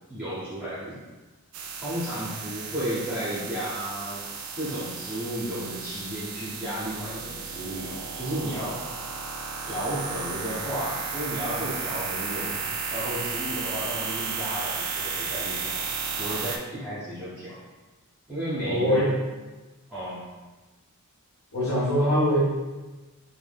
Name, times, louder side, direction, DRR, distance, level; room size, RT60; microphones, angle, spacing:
voice 1, 0.1-1.0 1.8-4.3 4.6-8.8 9.6-15.9 16.2-17.6 18.3-19.1 19.9-20.3, equal, 5° right, -11 dB, 0.6 m, -33 dB
sound 1, 1.5-16.6, right 5 dB, 85° right, 0.4 m, -33 dB
voice 2, 18.7-19.1 21.5-22.4, equal, 75° left, -10 dB, 0.7 m, -22 dB
2.6 x 2.1 x 3.4 m, 1.2 s
head